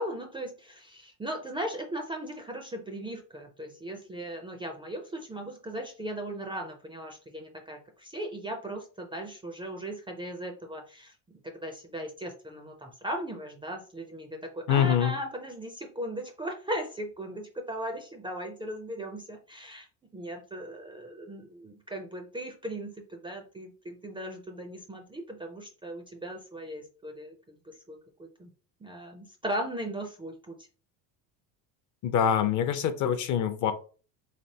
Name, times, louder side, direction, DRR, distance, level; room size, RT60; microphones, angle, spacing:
voice 1, 0.0-11.1 11.6-19.9 20.1-28.5 28.8-30.5, right 1 dB, 10° right, 3 dB, 0.4 m, -38 dB
voice 2, 14.7-15.1 32.0-33.7, left 9 dB, 45° left, 10 dB, 0.5 m, -25 dB
3.5 x 3.3 x 2.7 m, 0.38 s
supercardioid pair, 115°, 45 cm